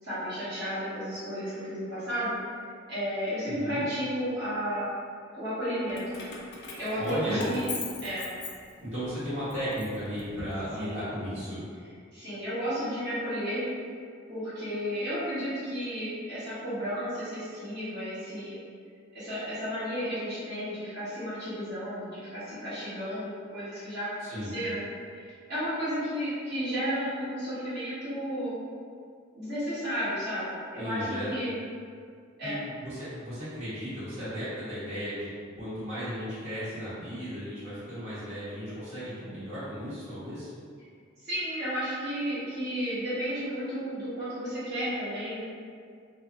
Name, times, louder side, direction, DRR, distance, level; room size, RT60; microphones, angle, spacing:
voice 1, 0.0-2.4 2.9-4.8 5.3-6.2 6.8-7.6 8.0-8.3 10.8-11.0 12.1-13.7 14.3-18.6 19.1-24.8 25.1-28.5 29.3-31.5 32.4-32.6 41.2-45.4, equal, 55° right, -14 dB, 1.4 m, -33 dB
voice 2, 3.5-3.8 7.0-7.5 8.8-11.6 24.2-24.5 30.7-31.3 32.4-40.5, equal, 30° right, -16 dB, 1.3 m, -35 dB
Keys jangling, 5.9-9.1 9.5-10.8, left 3 dB, 55° left, 0.4 m, -40 dB
2.5 x 2.4 x 2.6 m, 2.2 s
head